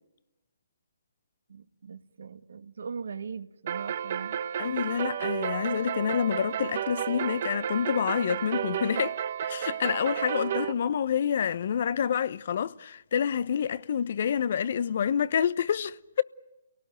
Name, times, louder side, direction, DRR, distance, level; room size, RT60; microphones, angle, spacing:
voice 1, 1.5-4.4 9.8-9.9, right 6 dB, 70° right, 1.8 m, -40 dB
sound 1, 3.7-10.7, right 9 dB, 50° right, 1.1 m, -32 dB
voice 2, 4.5-9.1 9.4-16.2, left 8 dB, 55° left, 0.9 m, -28 dB
29.5 x 18.5 x 9.1 m
hypercardioid pair, 145°, 0 cm